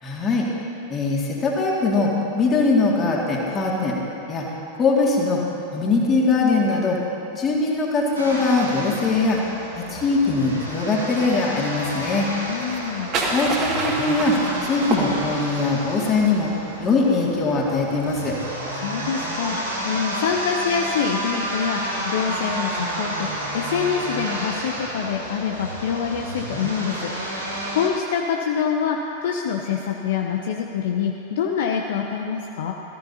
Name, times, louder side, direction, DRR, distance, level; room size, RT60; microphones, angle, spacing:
voice 1, 0.0-0.5 0.9-4.0 4.3-4.5 4.8-5.4 5.7-7.0 7.3-9.4 9.8-12.3 13.3-14.3 14.6-16.5 16.8-18.4, left 3 dB, 25° left, -3 dB, 2.3 m, -21 dB
sound 1, 8.1-27.9, right 1 dB, 80° right, 2.6 m, -31 dB
voice 2, 12.5-13.1 18.7-32.7, left 7 dB, 55° left, 2 dB, 0.7 m, -26 dB
sound 2, 12.6-15.6, right 2 dB, 40° right, 2.2 m, -27 dB
18.5 x 14.0 x 2.9 m, 2.8 s
figure-of-eight pair, 90°, 0 cm